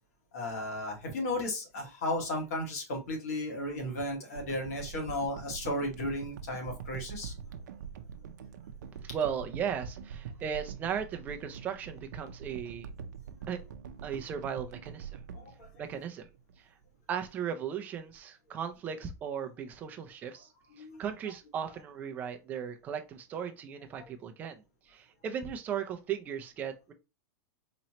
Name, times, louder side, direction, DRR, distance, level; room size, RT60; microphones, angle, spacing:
voice 1, 0.3-7.3 15.3-15.7 20.8-21.0 24.0-24.1, left 1 dB, 60° left, 1.8 m, -34 dB
sound 1, 4.4-16.6 17.1-17.2, right 7 dB, 80° right, 0.6 m, -44 dB
voice 2, 9.1-12.9 13.5-13.6 14.0-15.2 15.8-16.3 16.6-16.7 17.1-20.5 20.8-26.9, right 8 dB, 15° right, 0.5 m, -37 dB
4.2 x 3.0 x 2.8 m
supercardioid pair, 170°, 9 cm